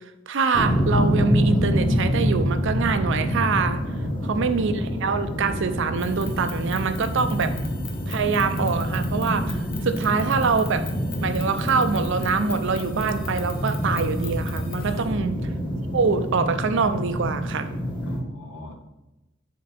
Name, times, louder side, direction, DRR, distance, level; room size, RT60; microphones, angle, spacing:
voice 1, 0.3-3.8 4.3-7.5 8.1-10.9 11.2-15.3 15.9-17.7, right 5 dB, 65° right, 10 dB, 0.5 m, -24 dB
sound 1, 0.5-18.2, equal, 25° left, 1.1 m, -26 dB
voice 2, 3.8-4.5 14.8-15.3 18.0-18.8, left 1 dB, 80° left, 3 dB, 1.1 m, -40 dB
sound 2, 5.9-15.1, left 7 dB, 45° left, 1.1 m, -43 dB
7.6 x 4.5 x 4.2 m, 0.98 s
head